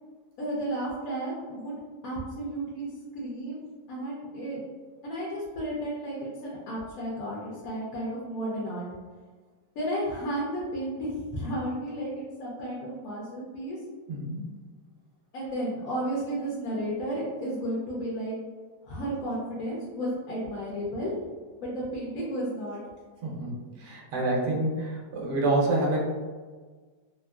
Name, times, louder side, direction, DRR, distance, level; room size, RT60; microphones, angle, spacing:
voice 1, 0.4-1.8 2.0-2.9 3.1-3.6 3.9-4.6 5.0-8.9 9.8-13.8 15.3-18.4 18.8-21.1 21.6-22.8, right 1 dB, 70° left, -5 dB, 0.9 m, -33 dB
voice 2, 14.1-14.4 23.2-26.0, right 2 dB, 60° right, -2 dB, 0.9 m, -27 dB
2.9 x 2.5 x 2.3 m, 1.4 s
omnidirectional pair, 1.9 m